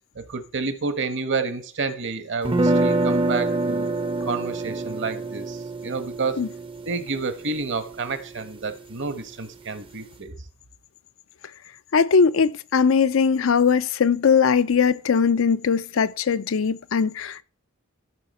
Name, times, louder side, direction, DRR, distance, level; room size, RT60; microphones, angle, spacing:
voice 1, 0.1-3.9 4.2-6.4 6.9-10.3, right 4 dB, 55° right, 1.2 m, -29 dB
sound 1, 2.4-8.4, right 2 dB, 25° right, 0.6 m, -26 dB
voice 2, 11.9-17.4, left 6 dB, 65° left, 0.5 m, -20 dB
13.0 x 5.7 x 4.2 m
head